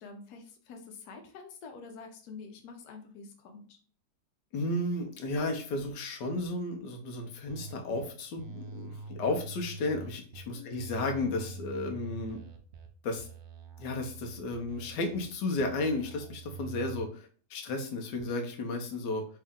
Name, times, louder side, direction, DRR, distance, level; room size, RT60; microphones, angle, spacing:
voice 1, 0.0-3.8 10.5-11.0, left 5 dB, 70° left, 4 dB, 1.2 m, -47 dB
voice 2, 4.5-12.4 13.0-13.3 13.8-19.2, left 2 dB, 90° left, 3 dB, 1.3 m, -33 dB
sound 1, 7.5-8.0 8.4-10.4 10.8-12.9 13.2-15.2 15.6-17.1, right 3 dB, 70° right, 1.0 m, -45 dB
3.4 x 2.8 x 3.6 m, 0.42 s
omnidirectional pair, 1.8 m